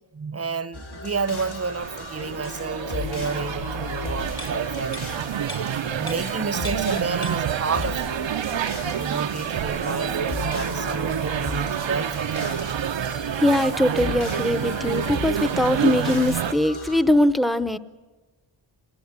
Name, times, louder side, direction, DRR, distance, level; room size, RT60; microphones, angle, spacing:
voice 1, 0.1-5.0 5.9-8.1 9.0-12.5, right 5 dB, 30° right, 0.8 m, -30 dB
sound 1, 0.7-17.0, left 3 dB, 85° left, 5.5 m, -36 dB
sound 2, 1.3-16.5, right 9 dB, 70° right, 0.8 m, -28 dB
sound 3, 4.4-7.0 7.2-8.2 8.5-8.7, left 2 dB, 50° left, 2.2 m, -41 dB
voice 2, 13.4-17.8, left 1 dB, ahead, 0.8 m, -21 dB
25.5 x 20.5 x 8.2 m
wide cardioid pair, 90°, 46 cm